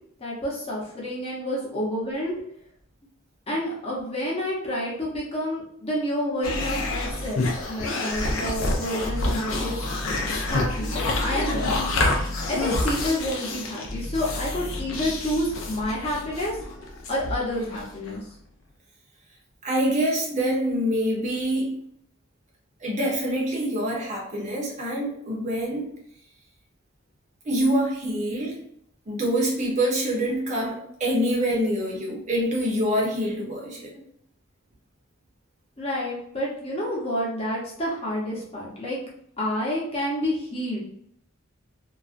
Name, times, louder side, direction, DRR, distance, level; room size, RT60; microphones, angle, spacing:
voice 1, 0.2-2.4 3.5-9.8 10.4-12.0 12.5-16.6 17.1-18.2 35.8-39.0 39.4-40.8, equal, 25° left, -5 dB, 0.7 m, -29 dB
sound 1, 6.4-18.2, left 2 dB, 65° left, 0.5 m, -28 dB
voice 2, 19.6-21.8 22.8-25.9 27.4-28.6 29.1-34.0, equal, 35° right, -3 dB, 0.7 m, -25 dB
2.3 x 2.2 x 2.4 m, 0.69 s
head